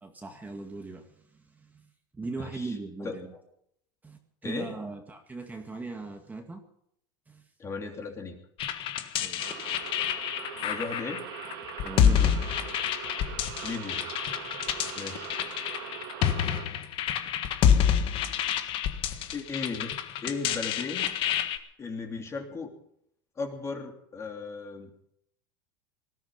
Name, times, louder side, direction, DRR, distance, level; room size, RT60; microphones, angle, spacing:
voice 1, 0.0-1.1 1.6-1.9 2.2-3.3 4.0-6.6 7.3-7.4 9.2-9.4 11.8-12.4, right 3 dB, 15° right, 4 dB, 2.0 m, -39 dB
voice 2, 2.4-3.4 4.4-4.7 7.6-8.4 10.6-11.2 13.6-14.1 14.9-15.3 19.3-20.0 20.2-21.1 21.8-22.7 23.4-24.9, left 4 dB, 25° left, 4 dB, 3.1 m, -36 dB
sound 1, 8.6-21.6, left 9 dB, 50° left, 1.7 m, -28 dB
sound 2, 9.4-16.7, right 9 dB, 85° right, 2.6 m, -41 dB
19.5 x 13.0 x 5.4 m, 0.71 s
supercardioid pair, 120°, 11 cm